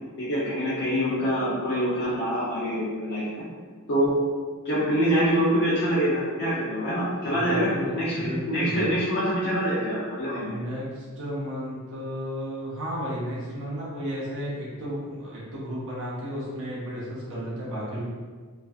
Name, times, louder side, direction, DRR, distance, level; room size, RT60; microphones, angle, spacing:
voice 1, 0.2-3.5 3.9-4.1 4.6-10.6, equal, 50° left, -9 dB, 0.5 m, -25 dB
voice 2, 7.3-8.9 10.4-18.0, equal, 60° right, -7 dB, 0.6 m, -33 dB
2.5 x 2.4 x 2.3 m, 1.5 s
head